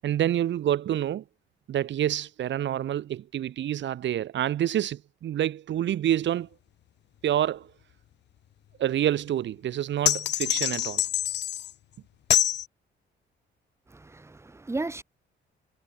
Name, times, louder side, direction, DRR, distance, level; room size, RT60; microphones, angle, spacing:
voice 1, 0.0-1.2 1.7-6.5 7.2-7.7 8.8-11.0, right 11 dB, 65° right, 1.3 m, -27 dB
sound 1, 10.1-11.7 12.3-12.7, left 12 dB, 60° left, 0.6 m, -25 dB
voice 2, 13.9-15.0, right 2 dB, 15° right, 1.0 m, -34 dB
cardioid pair, 90°, 20 cm